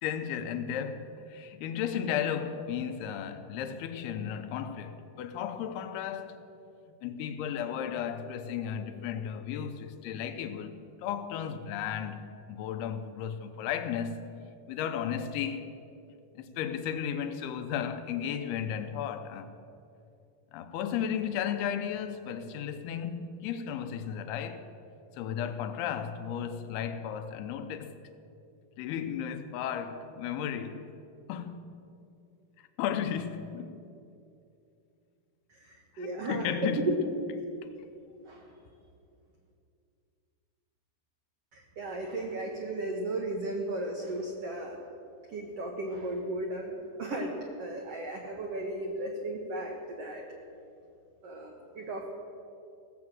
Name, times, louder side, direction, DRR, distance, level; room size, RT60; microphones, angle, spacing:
voice 1, 0.0-6.4 7.0-10.8 11.0-14.3 14.7-15.7 16.4-19.5 20.5-24.7 25.2-27.9 28.8-30.9 31.3-31.6 32.8-33.8 36.0-37.0, left 8 dB, 85° left, 2.7 m, -34 dB
voice 2, 35.5-36.9 38.3-38.6 41.5-44.8 45.3-50.2 51.2-52.1, right 2 dB, 85° right, 1.3 m, -35 dB
17.0 x 7.3 x 7.8 m
omnidirectional pair, 4.5 m